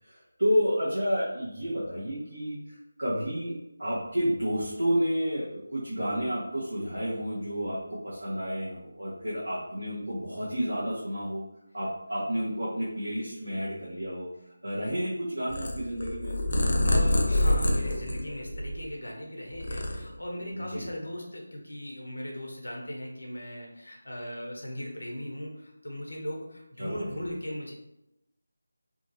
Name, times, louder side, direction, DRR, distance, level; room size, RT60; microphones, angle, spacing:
voice 1, 0.0-11.4 11.7-14.3 14.6-16.4 20.5-20.9 26.8-27.2, equal, 85° right, -8 dB, 0.8 m, -30 dB
Purr, 15.5-19.0 19.4-20.5, left 1 dB, 50° left, 0.5 m, -26 dB
voice 2, 16.8-27.7, equal, 80° left, 0 dB, 0.8 m, -38 dB
2.8 x 2.4 x 2.7 m, 0.86 s
figure-of-eight pair, 165°, 0 cm